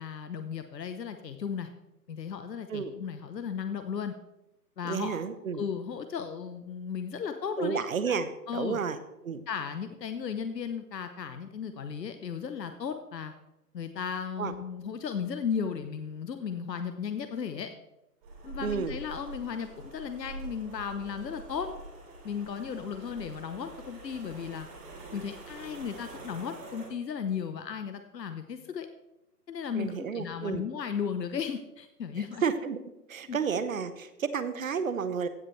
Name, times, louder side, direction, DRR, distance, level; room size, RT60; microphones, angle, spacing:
voice 1, 0.0-1.7 2.1-4.1 4.8-5.2 5.5-8.2 8.5-8.8 9.5-13.3 13.7-17.7 18.4-21.7 22.2-24.7 25.1-28.9 29.5-32.4 33.3-33.4, left 7 dB, 80° left, 8 dB, 1.0 m, -35 dB
voice 2, 4.8-5.6 7.6-9.0 9.2-9.4 14.4-14.5 18.6-19.0 29.7-30.7 32.2-32.8 33.1-35.3, right 6 dB, 55° right, 12 dB, 1.0 m, -31 dB
sound 1, 18.2-26.9, right 2 dB, 20° right, 2.8 m, -45 dB
16.0 x 7.0 x 3.2 m, 0.92 s
hypercardioid pair, 155°, 49 cm